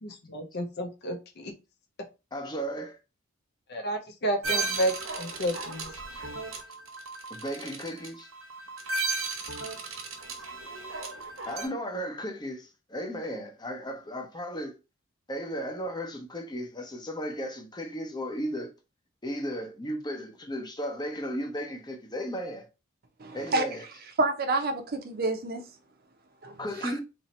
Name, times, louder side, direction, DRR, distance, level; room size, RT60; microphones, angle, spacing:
voice 1, 0.0-1.5 2.0-2.1 3.7-5.9, equal, 55° left, 0.8 m, -31 dB
voice 2, 2.3-3.0 6.1-6.2 7.3-8.3 11.5-14.8 15.3-18.7 19.2-22.7 23.3-23.9 26.6-27.0, equal, 20° left, 0.8 m, -35 dB
sound 1, 4.4-11.7, right 3 dB, 90° right, 0.9 m, -35 dB
voice 3, 23.2-23.6 24.2-25.6 26.4-26.5 26.8-26.9, right 2 dB, 50° right, 0.6 m, -28 dB
2.9 x 2.8 x 4.1 m
head